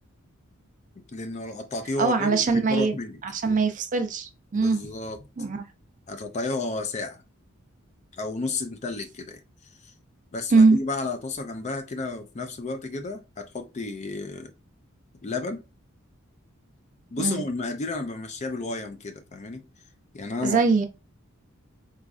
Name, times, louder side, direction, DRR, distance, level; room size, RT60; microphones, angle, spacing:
voice 1, 1.1-3.2 4.5-5.2 6.1-7.2 8.2-9.4 10.3-14.5 15.2-15.6 17.1-19.7 20.1-20.6, left 3 dB, 35° left, 0.4 m, -32 dB
voice 2, 2.0-2.9 3.2-4.8 5.4-5.6 10.5-10.8 17.2-17.4 20.4-20.9, right 4 dB, 35° right, 0.5 m, -21 dB
4.0 x 2.4 x 2.4 m
head